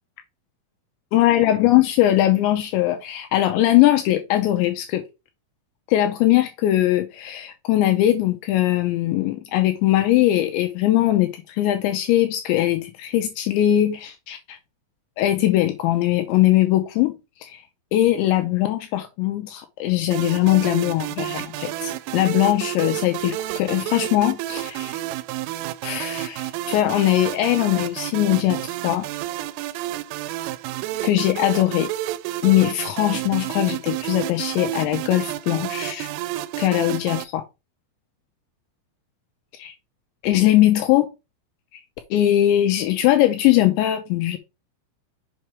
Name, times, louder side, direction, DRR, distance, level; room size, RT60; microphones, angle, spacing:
voice 1, 1.1-5.0 5.9-14.6 15.2-17.2 17.4-17.6 17.9-25.0 25.8-29.1 31.0-31.9 32.4-36.1 36.6-37.4 39.5-39.7 40.2-41.1 42.1-44.4, left 14 dB, 85° left, 2.7 m, -20 dB
sound 1, 20.1-37.2, right 15 dB, 85° right, 3.1 m, -30 dB
7.4 x 5.5 x 3.1 m
omnidirectional pair, 5.8 m